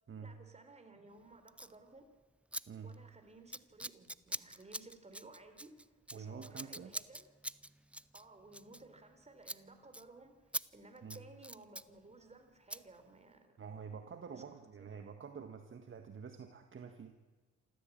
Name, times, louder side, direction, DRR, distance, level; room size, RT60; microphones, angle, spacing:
voice 1, 0.2-2.1 2.8-5.7 6.1-7.3 8.1-10.3 10.7-13.5 14.3-14.4 14.8-14.9, right 2 dB, 20° right, 7 dB, 4.2 m, -57 dB
Scissors, 1.5-1.8 2.5-2.6 2.9-3.2 3.5-9.2 9.4-9.6 9.9-10.0 10.5-10.6 11.0-11.9 12.7-12.8, right 1 dB, 5° right, 0.6 m, -44 dB
voice 2, 6.1-6.9 11.0-11.2 13.6-17.2, right 6 dB, 40° right, 6 dB, 1.7 m, -48 dB
27.5 x 14.0 x 8.9 m, 1.4 s
cardioid pair, 90°, 30 cm